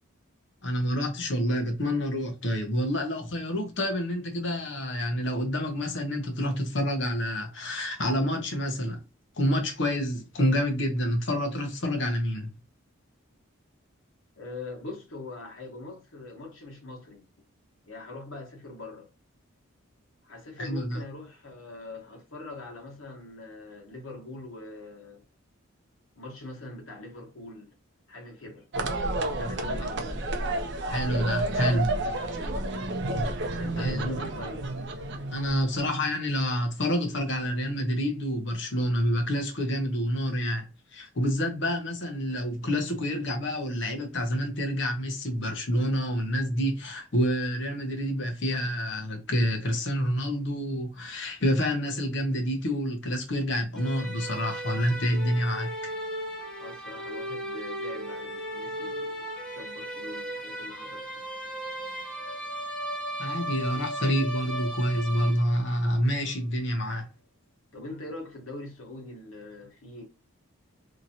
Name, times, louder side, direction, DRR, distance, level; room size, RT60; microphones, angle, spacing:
voice 1, 0.6-9.0 9.4-12.5 20.6-21.0 30.9-31.9 33.8-34.2 35.3-55.9 63.2-67.1, equal, 55° left, 0.8 m, -28 dB
voice 2, 14.4-17.2 17.9-19.1 20.2-25.2 26.1-27.7 28.1-28.7 29.3-30.3 33.6-34.6 56.6-59.3 59.5-61.1 67.7-70.1, left 2 dB, 75° left, 1.2 m, -42 dB
sound 1, 28.7-35.9, right 2 dB, 55° right, 0.5 m, -30 dB
sound 2, 53.8-65.8, right 1 dB, 5° left, 0.5 m, -36 dB
2.9 x 2.6 x 2.8 m
head